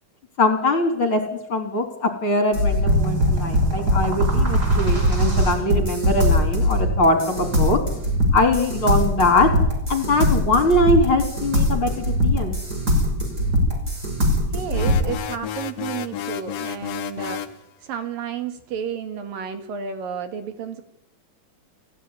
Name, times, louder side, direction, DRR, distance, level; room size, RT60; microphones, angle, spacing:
voice 1, 0.4-7.8 8.3-9.5 9.9-12.6, left 2 dB, 35° left, 6 dB, 4.1 m, -21 dB
sound 1, 2.5-15.1, equal, 25° right, 5.9 m, -21 dB
voice 2, 14.5-20.8, right 7 dB, 70° right, 8 dB, 3.8 m, -32 dB
sound 2, 14.7-17.6, left 9 dB, 60° left, 2.0 m, -31 dB
29.0 x 16.5 x 9.8 m, 0.77 s
omnidirectional pair, 4.1 m